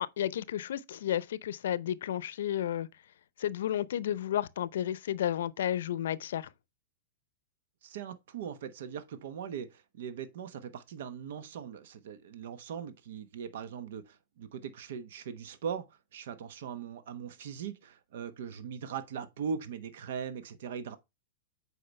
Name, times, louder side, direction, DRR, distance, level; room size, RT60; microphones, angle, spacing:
voice 1, 0.2-2.9 3.4-6.5, left 11 dB, 80° left, 0.6 m, -32 dB
voice 2, 7.8-21.0, right 7 dB, 70° right, 1.0 m, -40 dB
7.8 x 4.8 x 3.3 m
hypercardioid pair, 130°, 0 cm